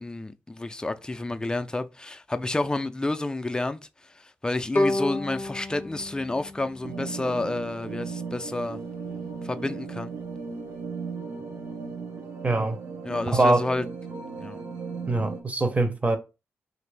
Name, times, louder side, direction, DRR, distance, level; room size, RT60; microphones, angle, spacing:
voice 1, 0.0-3.8 4.1-8.8 9.4-10.1 13.0-13.8 14.4-14.6, left 2 dB, 15° left, 0.4 m, -30 dB
Bowed string instrument, 4.7-7.8, left 2 dB, 45° left, 0.8 m, -30 dB
sound 1, 6.8-15.4, right 4 dB, 85° right, 0.7 m, -36 dB
voice 2, 12.4-12.8 13.3-13.6 15.1-16.2, right 2 dB, 30° right, 0.7 m, -23 dB
2.9 x 2.5 x 3.3 m
cardioid pair, 70°, 5 cm